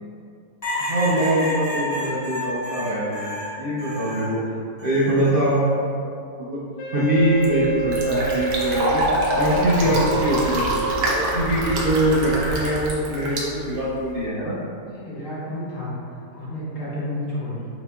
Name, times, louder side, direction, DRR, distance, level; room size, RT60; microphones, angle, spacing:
sound 1, 0.6-4.3 4.8-5.6 7.0-7.4, equal, 25° left, 1.2 m, -30 dB
voice 1, 0.9-3.2 3.6-4.4 4.8-6.1 6.5-6.6 6.9-10.6 11.0-14.6, right 1 dB, 65° right, -8 dB, 0.5 m, -23 dB
Wind instrument woodwind instrument, 6.8-11.8, right 3 dB, 75° left, 1.4 m, -28 dB
Fill (with liquid), 7.1-14.2, right 1 dB, 85° right, 1.4 m, -26 dB
voice 2, 14.8-17.7, left 1 dB, 55° left, -9 dB, 1.4 m, -31 dB
5.9 x 2.9 x 2.3 m, 2.5 s
omnidirectional pair, 1.8 m